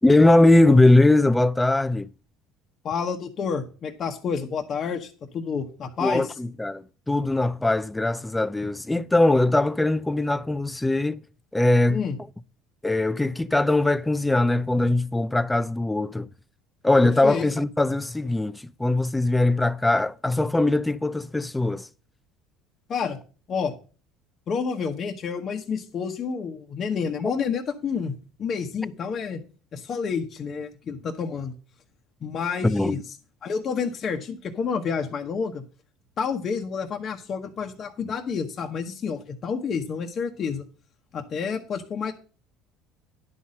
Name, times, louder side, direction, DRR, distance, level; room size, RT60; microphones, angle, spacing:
voice 1, 0.0-2.1 6.0-11.2 11.5-12.0 12.8-16.3 16.8-21.9 32.6-33.0, left 2 dB, 10° left, 0.4 m, -21 dB
voice 2, 2.8-6.3 11.9-12.2 17.0-17.5 22.9-23.2 23.5-23.7 24.5-28.1 28.4-29.4 29.7-31.5 32.2-33.0 33.4-35.6 36.2-40.6 41.1-42.1, left 6 dB, 40° left, 1.0 m, -29 dB
11.0 x 4.1 x 7.6 m
cardioid pair, 125°, 0 cm